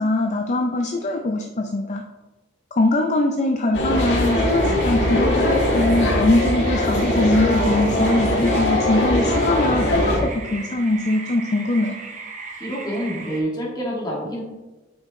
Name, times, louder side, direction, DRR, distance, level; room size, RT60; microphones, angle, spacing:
voice 1, 0.0-2.0 2.7-11.9, left 2 dB, 40° left, 4 dB, 0.5 m, -22 dB
sound 1, 3.7-10.2, left 1 dB, 70° left, 1.5 m, -21 dB
sound 2, 3.9-13.4, right 4 dB, 40° right, 0.9 m, -37 dB
voice 2, 12.6-14.4, equal, 25° left, -4 dB, 1.9 m, -27 dB
7.8 x 5.4 x 3.1 m, 1.1 s
head